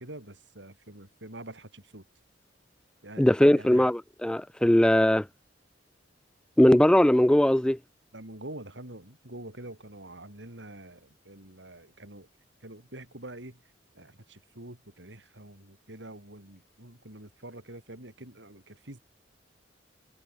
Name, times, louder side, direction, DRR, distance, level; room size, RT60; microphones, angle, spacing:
voice 1, 0.0-2.0 3.0-3.9 8.1-12.3 12.6-13.6 13.9-19.0, right 1 dB, 70° right, 5.4 m, -46 dB
voice 2, 3.2-5.3 6.6-7.8, left 1 dB, 5° left, 0.3 m, -20 dB
head